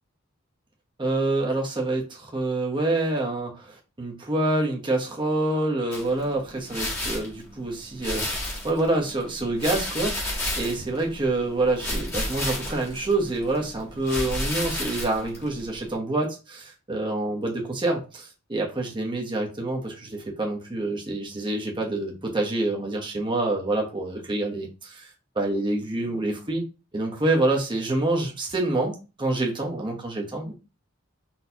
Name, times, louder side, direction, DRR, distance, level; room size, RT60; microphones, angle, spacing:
voice 1, 1.0-8.2 8.6-26.6 26.9-30.5, right 2 dB, 25° right, -1 dB, 1.0 m, -27 dB
sound 1, 5.9-15.9, left 1 dB, 10° left, 1.3 m, -33 dB
4.2 x 3.1 x 2.8 m, 0.31 s
head